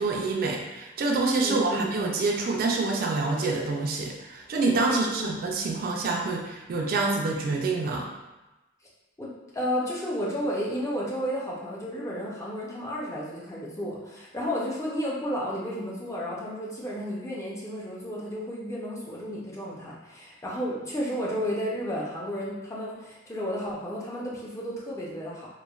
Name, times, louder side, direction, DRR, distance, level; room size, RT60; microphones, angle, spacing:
voice 1, 0.0-8.1, right 3 dB, 50° right, 0 dB, 0.3 m, -27 dB
voice 2, 1.4-1.9 4.9-5.4 9.2-25.5, equal, 15° left, -5 dB, 0.5 m, -32 dB
3.1 x 2.1 x 2.3 m, 1.1 s
head